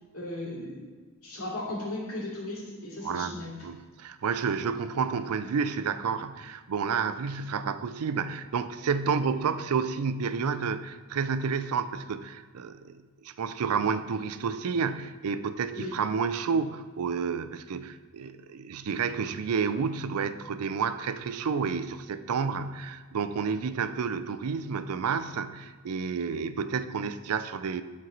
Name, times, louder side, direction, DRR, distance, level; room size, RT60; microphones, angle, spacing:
voice 1, 0.1-0.8 1.2-3.6 15.7-15.9, left 1 dB, 70° left, -5 dB, 2.5 m, -36 dB
voice 2, 3.0-3.3 3.6-27.8, right 5 dB, 85° right, 12 dB, 0.4 m, -30 dB
11.0 x 4.6 x 3.9 m, 1.5 s
head